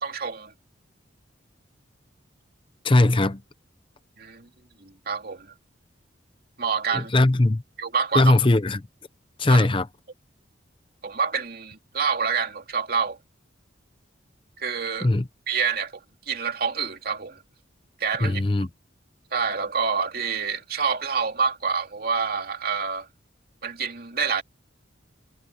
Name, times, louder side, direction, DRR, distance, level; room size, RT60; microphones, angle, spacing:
voice 1, 0.0-0.5 4.2-4.5 4.8-5.5 6.6-7.1 7.8-8.3 9.5-9.7 11.0-13.2 14.6-15.1 15.5-15.9 16.3-17.4 18.0-18.4 19.3-23.1 23.6-24.4, right 5 dB, 50° right, 2.9 m, -27 dB
voice 2, 2.8-3.4 6.9-7.6 8.1-8.8 9.4-9.9 15.0-15.2 18.2-18.7, left 2 dB, 25° left, 0.6 m, -19 dB
head